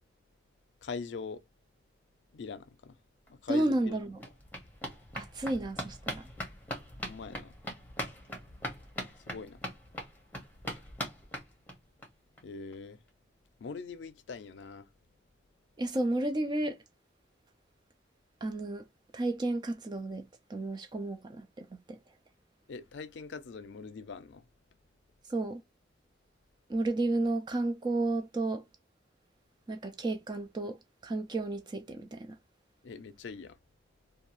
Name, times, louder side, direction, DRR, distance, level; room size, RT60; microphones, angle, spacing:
voice 1, 0.8-1.4 2.3-3.0 3.3-4.0 7.0-7.6 9.3-9.6 12.4-13.0 13.6-14.9 22.7-24.5 32.8-33.6, left 4 dB, 75° left, 0.4 m, -42 dB
sound 1, 3.3-3.4 3.6-12.1 12.4-12.5 12.7-12.8 13.1-13.2, left 1 dB, 10° left, 0.8 m, -41 dB
voice 2, 3.5-4.2 5.1-6.3 15.8-16.8 18.4-18.9 19.1-22.0 25.3-25.6 26.7-28.6 29.7-32.4, right 2 dB, 25° right, 0.3 m, -32 dB
2.6 x 2.3 x 2.8 m
head